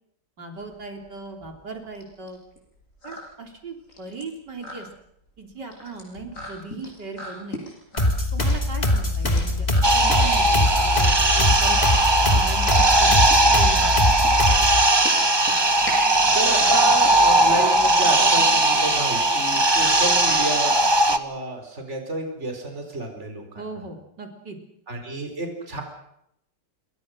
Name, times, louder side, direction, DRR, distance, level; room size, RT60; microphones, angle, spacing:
voice 1, 0.4-2.4 3.0-4.9 5.4-7.6 8.3-11.8 12.3-13.2 13.5-13.9 23.6-24.6, right 3 dB, 70° right, 3 dB, 4.2 m, -38 dB
sound 1, 0.6-18.3, equal, 45° left, 8.3 m, -40 dB
sound 2, 8.0-14.8, left 1 dB, 20° left, 2.8 m, -23 dB
sound 3, 9.8-21.2, right 2 dB, 15° right, 1.3 m, -19 dB
voice 2, 16.3-20.8 21.1-23.4 24.9-25.8, right 2 dB, 40° right, 4 dB, 4.8 m, -29 dB
27.5 x 23.0 x 6.4 m, 0.76 s
omnidirectional pair, 1.9 m